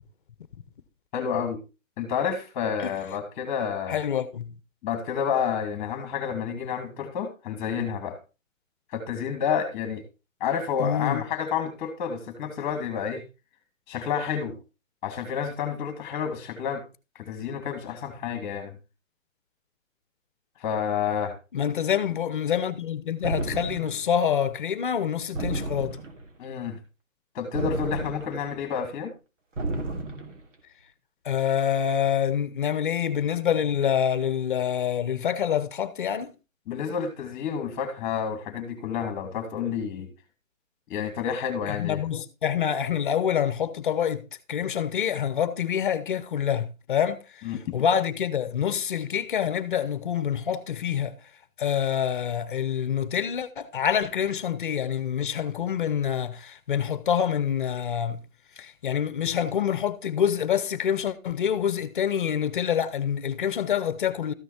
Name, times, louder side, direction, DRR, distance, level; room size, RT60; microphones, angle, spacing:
voice 1, 1.1-1.6 2.0-4.0 4.8-8.2 8.9-10.0 10.4-13.2 13.9-14.6 15.0-16.8 17.2-18.8 20.6-21.3 26.4-26.8 27.3-29.1 36.7-40.1 40.9-42.0 47.4-47.8, left 7 dB, 15° left, 2.3 m, -29 dB
voice 2, 3.9-4.6 10.8-11.2 21.5-26.0 31.2-36.3 41.7-47.4 47.7-51.2 51.6-58.2 58.6-64.3, left 8 dB, 40° left, 1.0 m, -26 dB
sound 1, 23.2-24.1 25.3-26.3 27.5-28.6 29.6-30.4, right 2 dB, 65° right, 2.9 m, -32 dB
14.0 x 6.1 x 4.4 m
hypercardioid pair, 165°, 40 cm